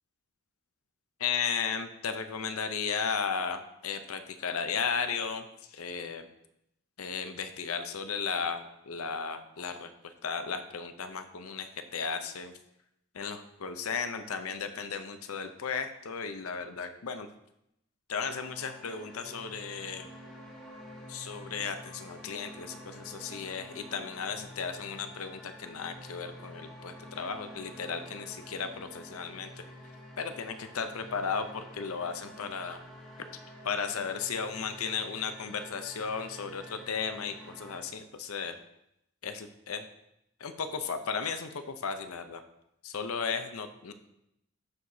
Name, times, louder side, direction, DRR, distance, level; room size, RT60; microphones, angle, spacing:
voice 1, 1.2-6.3 7.0-9.9 10.2-12.5 13.1-17.3 18.1-20.1 21.1-29.6 30.2-32.8 33.6-38.6 39.2-39.8 40.4-42.4 42.8-43.9, left 6 dB, 85° left, 8 dB, 0.6 m, -35 dB
sound 1, 18.4-37.8, equal, 5° left, 2.3 m, -49 dB
13.0 x 4.8 x 2.7 m, 0.81 s
head